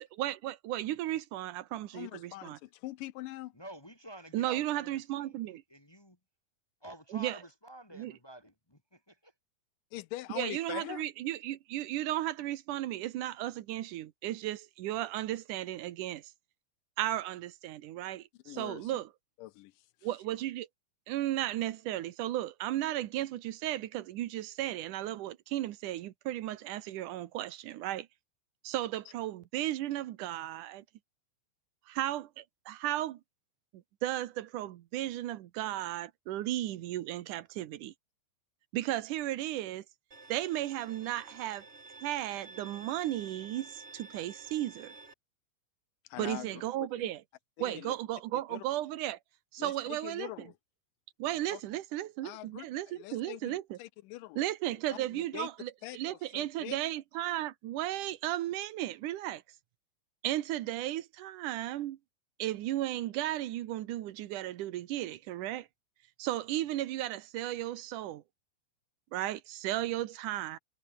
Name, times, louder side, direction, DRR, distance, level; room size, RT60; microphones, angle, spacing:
voice 1, 0.2-2.6 4.3-5.6 7.1-7.4 8.0-8.1 10.4-16.3 17.0-19.1 20.0-20.7 21.1-28.1 28.6-30.8 31.9-33.2 33.7-37.9 38.7-39.8 40.3-41.7 42.0-44.9 46.2-47.2 47.6-49.2 49.5-50.3 51.2-53.8 54.4-59.4 60.2-62.0 62.4-65.7 66.2-68.2 69.1-70.6, right 14 dB, 65° right, 2.3 m, -35 dB
voice 2, 1.9-3.6 9.9-11.0 18.5-19.0 19.4-19.9 46.0-47.1 47.6-47.9 48.3-48.6 49.6-50.6 51.5-51.6 52.2-54.5 54.9-55.5 55.8-56.8, left 17 dB, 80° left, 2.1 m, -43 dB
voice 3, 3.5-6.2 6.8-9.3, right 1 dB, 15° left, 0.7 m, -50 dB
Bowed string instrument, 40.1-45.1, right 3 dB, 20° right, 2.2 m, -51 dB
omnidirectional pair, 4.3 m